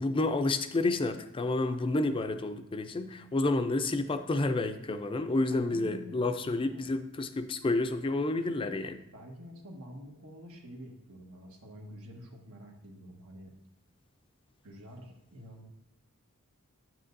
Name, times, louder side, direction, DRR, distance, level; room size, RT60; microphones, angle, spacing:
voice 1, 0.0-9.0, left 2 dB, 25° left, 8 dB, 0.4 m, -30 dB
voice 2, 5.5-6.3 6.6-6.8 8.6-8.7 9.1-13.5 14.6-15.7, equal, 85° right, 1 dB, 1.4 m, -48 dB
9.1 x 7.6 x 2.6 m, 0.80 s
head